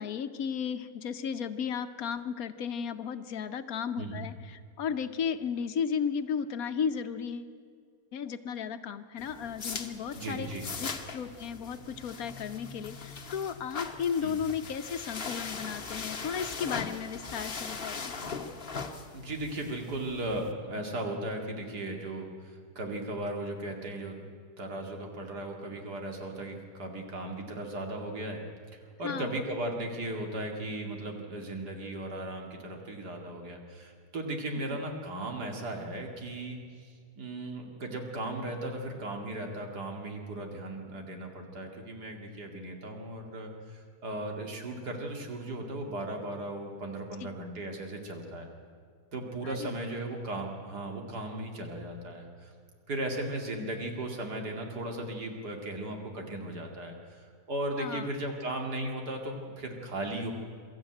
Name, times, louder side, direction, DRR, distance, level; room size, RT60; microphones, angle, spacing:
voice 1, 0.0-7.5 8.1-10.5 10.8-18.1 29.0-29.4 34.7-34.8 47.2-47.3 49.4-49.7 57.8-58.1, left 7 dB, 65° left, 10 dB, 1.2 m, -34 dB
sound 1, 9.2-20.5, left 5 dB, 40° left, 1.3 m, -40 dB
voice 2, 10.1-10.7 14.2-14.4 19.1-24.2 24.6-28.4 28.7-36.9 37.2-48.5 49.1-52.5 52.9-60.3, right 1 dB, 80° right, 2 dB, 2.9 m, -37 dB
23.5 x 13.5 x 9.1 m, 2.1 s
omnidirectional pair, 1.7 m